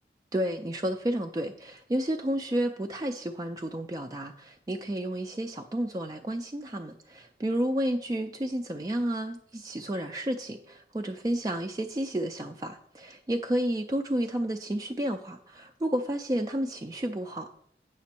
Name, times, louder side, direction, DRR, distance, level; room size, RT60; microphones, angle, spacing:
voice 1, 0.3-17.5, right 1 dB, 20° right, 4 dB, 0.3 m, -31 dB
8.2 x 6.0 x 4.3 m, 0.69 s
head